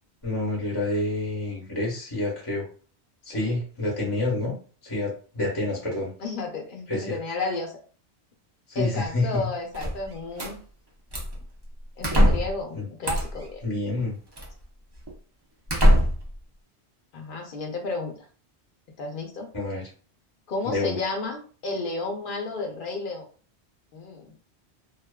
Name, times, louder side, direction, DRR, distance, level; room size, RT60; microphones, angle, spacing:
voice 1, 0.2-2.7 3.2-4.5 4.8-6.1 6.9-7.2 8.7-9.4 12.7-12.9 13.6-14.2 19.5-19.8 20.6-21.0, left 2 dB, 25° left, -3 dB, 0.7 m, -28 dB
voice 2, 6.2-7.8 8.7-10.6 12.0-13.6 17.1-18.1 19.0-19.5 20.5-23.2 23.9-24.4, left 3 dB, 55° left, 2 dB, 0.8 m, -32 dB
sound 1, 9.7-10.5 11.1-11.4 12.0-12.6 13.0-13.5 14.4-14.5 15.1-15.2 15.7-16.3, equal, 35° right, 0.4 m, -21 dB
2.5 x 2.3 x 2.2 m, 0.40 s
omnidirectional pair, 1.1 m